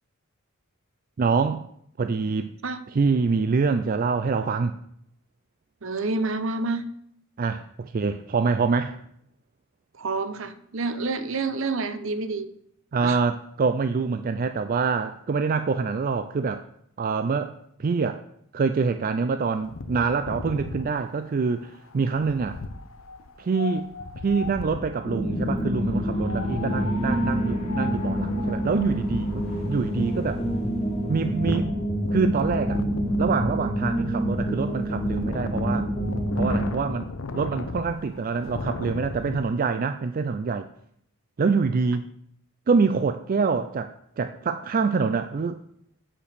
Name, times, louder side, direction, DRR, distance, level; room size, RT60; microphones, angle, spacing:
voice 1, 1.2-1.6 2.0-2.5 2.9-4.8 7.4-9.0 12.9-16.6 17.0-17.5 17.8-18.2 18.5-22.6 23.4-23.9 24.2-30.4 31.1-31.7 32.1-32.8 33.2-35.9 36.4-37.1 37.3-40.7 41.4-42.1 42.7-45.6, right 4 dB, 40° right, 10 dB, 0.3 m, -25 dB
voice 2, 5.8-6.9 9.9-12.5 13.0-13.2, right 3 dB, 60° right, 12 dB, 0.7 m, -28 dB
Wind, 19.6-25.1 26.1-39.4, left 3 dB, 65° left, 0.7 m, -37 dB
sound 1, 25.0-36.7, equal, 25° left, 1.4 m, -27 dB
8.7 x 5.1 x 6.6 m, 0.69 s
head